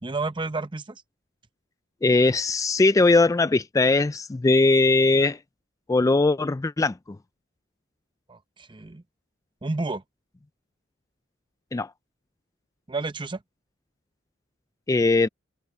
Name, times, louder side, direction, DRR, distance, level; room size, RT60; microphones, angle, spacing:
voice 1, 0.0-1.0 8.3-9.0 9.6-10.0 12.9-13.4, right 3 dB, 25° right, 0.8 m, -31 dB
voice 2, 2.0-5.4 5.9-6.9 11.7-11.9 14.9-15.3, left 3 dB, 15° left, 0.3 m, -20 dB
head